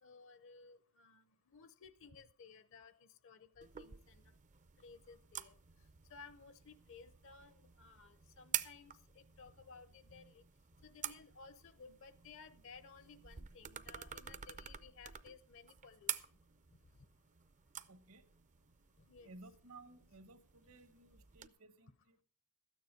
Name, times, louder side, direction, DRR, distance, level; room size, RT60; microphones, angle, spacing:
voice 1, 0.0-4.2 4.8-5.6 6.1-10.4 10.8-16.2 19.0-19.3, left 5 dB, 60° left, 0.7 m, -58 dB
sound 1, 3.6-21.5, right 9 dB, 35° right, 0.5 m, -49 dB
voice 2, 17.9-18.3 19.2-22.2, right 2 dB, 70° right, 1.2 m, -58 dB
13.0 x 9.4 x 5.0 m
head